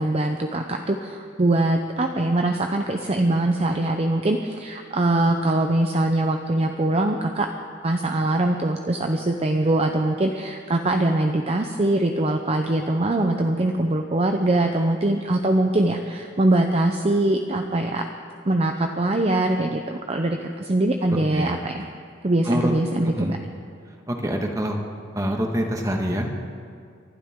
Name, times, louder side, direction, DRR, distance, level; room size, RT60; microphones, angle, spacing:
voice 1, 0.0-7.5 7.8-18.1 18.5-21.7 22.2-23.4, right 1 dB, 35° right, 4 dB, 0.7 m, -22 dB
voice 2, 21.1-21.6 22.4-22.7 23.0-23.4 24.1-24.8 25.1-26.3, equal, 20° right, 2 dB, 1.5 m, -26 dB
28.5 x 11.5 x 3.7 m, 2.3 s
head